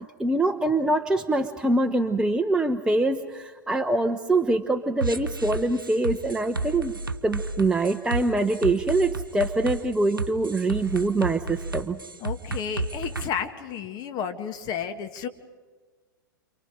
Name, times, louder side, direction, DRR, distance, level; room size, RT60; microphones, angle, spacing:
voice 1, 0.2-6.9 7.2-12.0, right 2 dB, 5° right, 5 dB, 0.9 m, -24 dB
sound 1, 5.0-13.3, right 2 dB, 90° right, 0.9 m, -32 dB
voice 2, 12.2-15.3, left 7 dB, 35° left, 7 dB, 1.9 m, -32 dB
29.5 x 27.5 x 5.0 m, 1.4 s
figure-of-eight pair, 100°, 11 cm